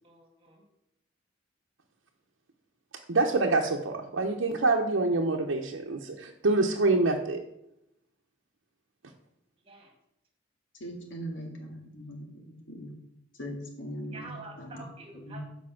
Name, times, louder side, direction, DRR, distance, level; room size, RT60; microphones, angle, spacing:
voice 1, 0.0-0.6 9.6-9.9 14.1-15.4, right 2 dB, 30° right, 2 dB, 1.8 m, -47 dB
voice 2, 2.9-7.4 9.0-9.1, right 3 dB, 85° right, 0 dB, 0.8 m, -26 dB
voice 3, 10.8-12.9 13.4-14.8 15.1-15.4, equal, 75° left, 1 dB, 2.0 m, -40 dB
7.6 x 5.2 x 5.7 m, 0.84 s
head